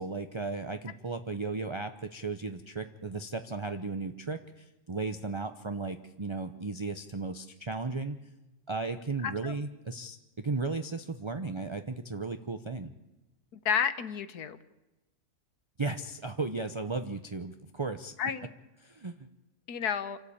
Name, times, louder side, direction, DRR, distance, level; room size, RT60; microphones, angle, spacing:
voice 1, 0.0-8.2 8.7-12.9 15.8-18.1 18.8-19.3, right 3 dB, 30° right, 8 dB, 0.5 m, -35 dB
voice 2, 9.2-9.5 13.6-14.6 18.2-18.5 19.7-20.2, left 7 dB, 85° left, 12 dB, 1.6 m, -31 dB
27.0 x 13.0 x 8.6 m, 1.0 s
omnidirectional pair, 1.6 m